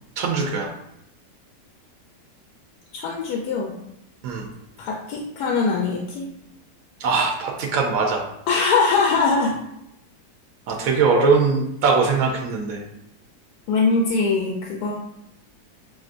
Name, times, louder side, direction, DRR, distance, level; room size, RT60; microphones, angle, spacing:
voice 1, 0.2-0.7 4.2-4.5 7.0-8.2 10.7-12.8, right 4 dB, 70° right, 0 dB, 0.8 m, -21 dB
voice 2, 2.9-3.7 4.8-6.3 8.5-9.6 13.7-14.9, left 4 dB, 70° left, -1 dB, 1.1 m, -22 dB
5.9 x 2.4 x 2.5 m, 0.82 s
omnidirectional pair, 1.9 m